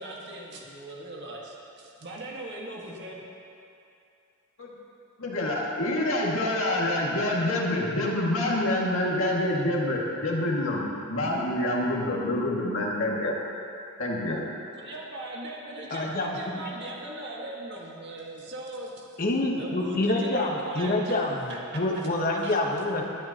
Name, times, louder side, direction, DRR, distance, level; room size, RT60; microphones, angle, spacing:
voice 1, 0.0-3.2 14.7-19.2 19.6-21.2 21.5-22.1 22.4-22.5, right 1 dB, 55° right, -3 dB, 1.8 m, -39 dB
voice 2, 5.2-13.4 14.0-14.4, left 1 dB, 70° left, -3 dB, 2.1 m, -27 dB
voice 3, 15.9-16.6 19.2-23.0, left 2 dB, 45° left, 0 dB, 1.3 m, -27 dB
21.5 x 10.0 x 3.0 m, 2.7 s
head